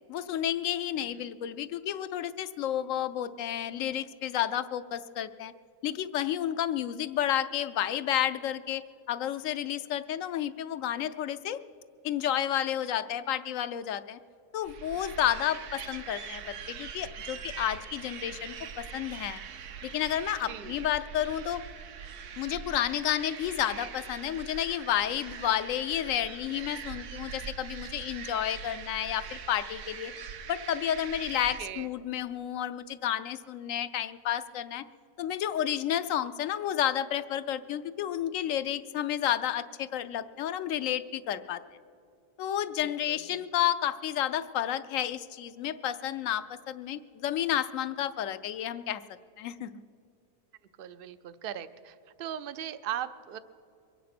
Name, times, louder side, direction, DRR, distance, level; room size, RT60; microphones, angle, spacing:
voice 1, 0.1-5.5 5.8-11.6 12.0-14.2 14.5-19.4 19.8-21.6 22.4-30.1 30.5-34.8 35.2-41.6 42.4-49.0 49.4-49.8, left 11 dB, 70° left, 13 dB, 0.8 m, -31 dB
sound 1, 14.6-31.6, right 7 dB, 85° right, 1.4 m, -43 dB
voice 2, 20.5-20.9 31.6-31.9 42.8-43.4 50.8-53.4, right 10 dB, 65° right, 13 dB, 0.5 m, -39 dB
23.0 x 9.4 x 6.0 m, 2.5 s
omnidirectional pair, 1.6 m